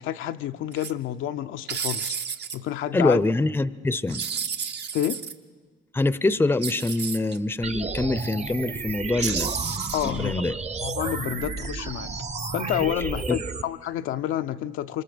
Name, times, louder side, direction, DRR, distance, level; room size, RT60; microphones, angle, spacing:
voice 1, 0.0-2.2 2.5-3.2 4.9-5.2 9.9-12.1 12.5-15.0, left 12 dB, 85° left, 0.6 m, -29 dB
sound 1, 0.7-0.9 1.7-2.6 4.1-5.3 6.6-7.4 9.2-10.3, right 6 dB, 60° right, 1.1 m, -31 dB
voice 2, 2.9-4.2 5.9-9.5 10.0-10.5 13.3-13.4, left 2 dB, 10° left, 0.6 m, -24 dB
sound 2, 7.6-13.6, right 4 dB, 35° right, 0.9 m, -32 dB
27.5 x 25.0 x 5.1 m
cardioid pair, 90°, 20 cm